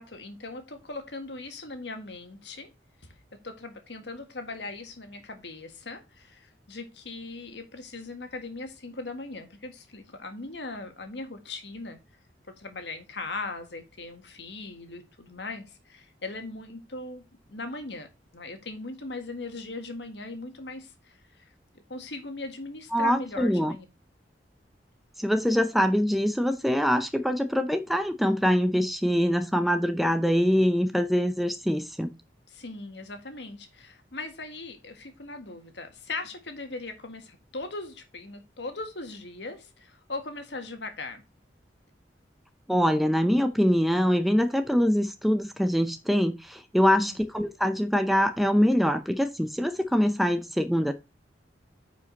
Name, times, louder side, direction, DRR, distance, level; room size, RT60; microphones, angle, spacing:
voice 1, 0.0-2.7 3.4-12.0 12.6-17.2 17.5-18.1 18.3-21.5 21.9-23.9 32.5-41.2 46.8-47.2, left 3 dB, 70° left, 1.7 m, -39 dB
voice 2, 22.9-23.7 25.2-32.1 42.7-50.9, equal, ahead, 0.6 m, -24 dB
9.6 x 5.1 x 4.0 m
head